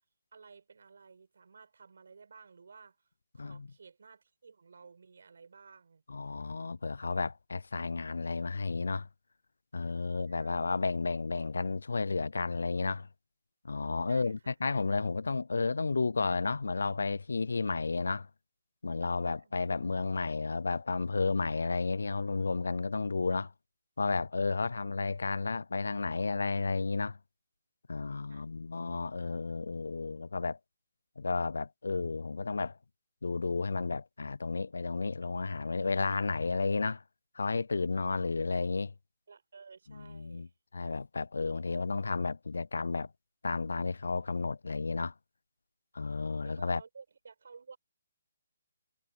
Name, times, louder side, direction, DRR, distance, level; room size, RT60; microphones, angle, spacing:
voice 1, 0.3-3.1 3.3-6.0 10.1-10.6 14.1-14.6 19.4-19.6 24.7-24.8 28.3-28.5 39.3-40.5 46.4-47.8, right 5 dB, 70° right, 5.3 m, -54 dB
voice 2, 6.1-9.1 9.7-13.1 13.6-18.3 18.8-23.5 24.0-27.2 27.9-30.6 31.2-32.8 33.2-37.0 37.4-38.9 39.9-40.5 40.7-43.1 43.4-45.1 45.9-46.8, left 4 dB, 85° left, 0.4 m, -32 dB
hypercardioid pair, 160°, 0 cm